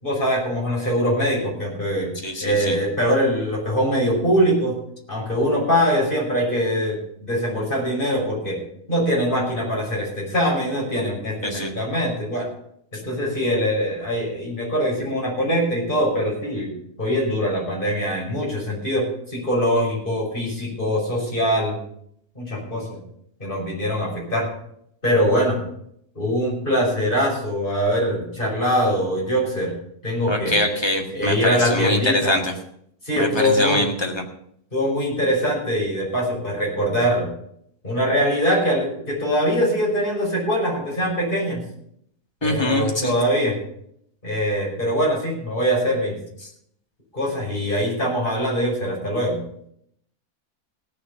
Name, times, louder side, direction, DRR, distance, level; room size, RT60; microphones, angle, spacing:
voice 1, 0.0-2.1 2.4-4.7 5.1-8.6 8.9-12.5 13.0-16.7 17.0-21.8 22.3-23.0 23.4-24.5 25.0-25.6 26.1-29.7 30.0-30.6 31.1-32.3 33.0-33.8 34.7-37.3 37.8-41.6 42.4-43.5 44.2-46.2 47.1-49.4, equal, 35° left, -4 dB, 6.2 m, -22 dB
voice 2, 2.2-2.8 11.4-11.7 30.3-32.6 33.2-34.2 42.4-43.1 46.4-46.5, left 1 dB, 15° left, 2 dB, 1.7 m, -23 dB
17.0 x 6.7 x 7.0 m, 0.70 s
omnidirectional pair, 1.6 m